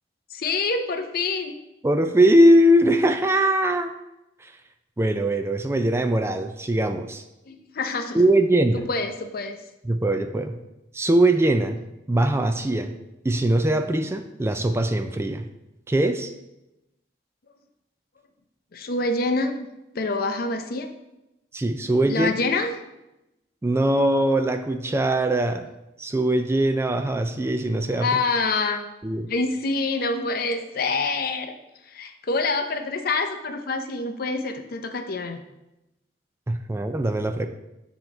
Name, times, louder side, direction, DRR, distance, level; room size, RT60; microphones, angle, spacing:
voice 1, 0.3-1.6 7.5-8.2 8.7-9.6 18.7-19.7 19.9-20.9 22.0-22.7 27.7-28.8 29.3-31.5 31.9-35.4, left 3 dB, 55° left, 7 dB, 0.6 m, -26 dB
voice 2, 1.8-3.9 4.4-4.5 5.0-7.2 8.1-8.8 9.8-10.5 10.9-11.8 12.1-12.9 13.2-15.4 15.9-16.3 21.5-22.3 23.6-25.6 26.0-28.1 29.0-29.3 36.5-37.5, right 1 dB, 15° right, 7 dB, 0.3 m, -21 dB
7.8 x 3.0 x 5.1 m, 0.94 s
head